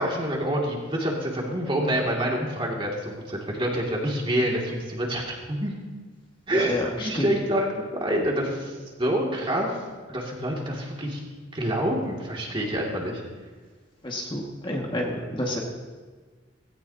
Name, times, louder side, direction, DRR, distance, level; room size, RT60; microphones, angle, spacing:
voice 1, 0.0-5.7 6.5-9.7 10.1-11.2 11.5-13.2, equal, 25° right, -2 dB, 2.4 m, -27 dB
voice 2, 6.5-7.3 14.0-15.6, left 1 dB, 25° left, -1 dB, 1.9 m, -29 dB
17.5 x 17.0 x 2.9 m, 1.5 s
head